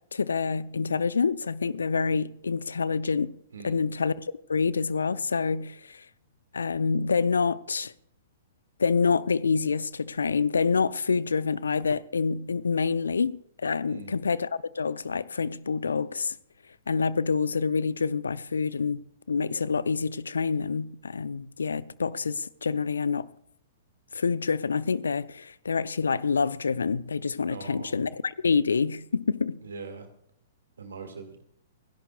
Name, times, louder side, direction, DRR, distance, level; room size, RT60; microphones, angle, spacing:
voice 1, 0.1-3.3 3.6-6.0 6.5-7.9 8.8-14.5 14.8-16.4 16.9-23.3 24.1-29.6, left 5 dB, 75° left, 0.6 m, -27 dB
voice 2, 3.5-3.9 13.9-14.2 27.5-28.0 29.6-30.1 30.8-31.4, right 5 dB, 70° right, 2.0 m, -42 dB
29.0 x 11.0 x 2.3 m
figure-of-eight pair, 110°, 0 cm